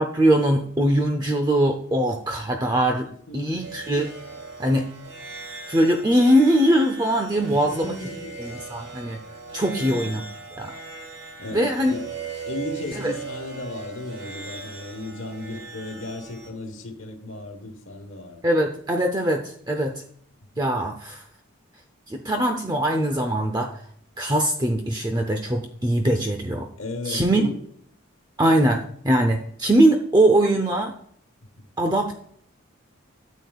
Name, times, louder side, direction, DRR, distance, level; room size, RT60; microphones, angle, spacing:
voice 1, 0.0-3.1 3.3-4.1 4.6-4.8 5.7-7.9 8.7-9.2 9.5-10.2 10.6-10.7 11.5-12.0 12.9-13.1 18.4-20.0 20.6-21.2 22.1-23.7 24.2-26.7 27.1-27.4 28.4-30.9 31.8-32.1, right 1 dB, 20° right, 5 dB, 0.6 m, -21 dB
voice 2, 3.0-3.6 7.5-8.4 9.7-10.0 11.4-12.0 12.5-18.4 20.5-20.6 24.6-24.9 26.8-27.6 31.6-31.7, left 2 dB, 75° left, 4 dB, 1.2 m, -35 dB
sound 1, 3.6-16.5, right 4 dB, 80° right, 2.0 m, -39 dB
13.0 x 8.3 x 2.3 m, 0.64 s
head